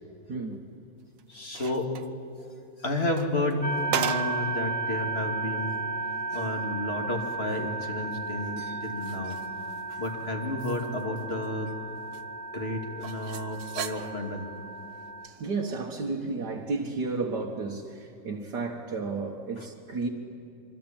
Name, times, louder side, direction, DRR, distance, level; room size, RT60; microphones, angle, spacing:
voice 1, 0.3-0.6 15.2-20.1, right 3 dB, 70° right, -1 dB, 2.1 m, -32 dB
sound 1, 1.0-2.1 2.9-4.5 4.9-5.0 5.6-5.7 6.1-6.6 8.1-10.1 10.4-11.7 12.1-12.2 13.0-14.4 15.2-15.4, right 9 dB, 85° right, 1.6 m, -38 dB
voice 2, 1.3-1.9 2.4-2.5 2.8-5.8 6.3-9.4 9.9-11.7 12.5-14.5 19.6-19.7, left 2 dB, 35° left, 3 dB, 2.9 m, -31 dB
sound 2, 3.6-15.3, right 3 dB, 5° left, 1.2 m, -34 dB
26.5 x 24.5 x 8.9 m, 2.7 s
omnidirectional pair, 1.9 m